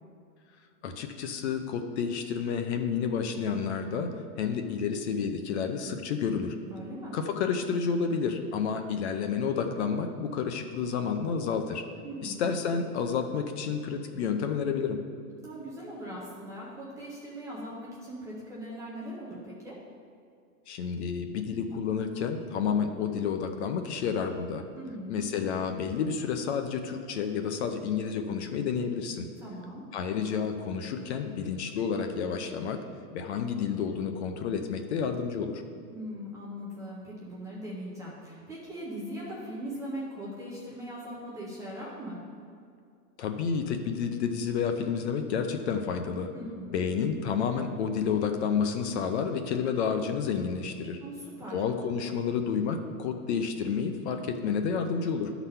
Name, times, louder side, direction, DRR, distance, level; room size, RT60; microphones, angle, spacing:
voice 1, 0.8-4.1 4.4-6.5 7.1-11.8 12.2-15.0 20.7-24.6 25.1-29.3 29.9-32.8 33.1-35.6 43.2-46.3 46.7-51.0 51.5-55.3, left 6 dB, 45° left, 6 dB, 0.7 m, -30 dB
voice 2, 6.7-7.2 12.0-12.5 15.4-19.8 24.8-25.2 29.4-29.8 35.9-42.2 46.3-46.8 51.0-51.6, equal, 5° right, -7 dB, 0.5 m, -40 dB
11.5 x 4.1 x 5.4 m, 2.3 s
hypercardioid pair, 150°, 47 cm